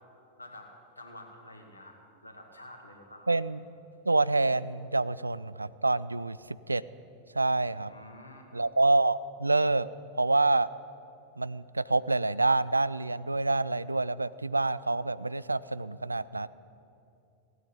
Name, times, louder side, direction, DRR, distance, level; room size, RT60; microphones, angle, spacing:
voice 1, 0.4-2.0 2.2-3.3 7.9-8.5, left 1 dB, 80° left, 2 dB, 2.0 m, -49 dB
voice 2, 3.3-3.6 4.1-6.8 7.3-7.9 8.5-9.9 10.2-10.7 11.4-16.5, right 2 dB, 80° right, 18 dB, 0.3 m, -27 dB
16.5 x 9.2 x 8.6 m, 2.7 s
figure-of-eight pair, 90°, 0 cm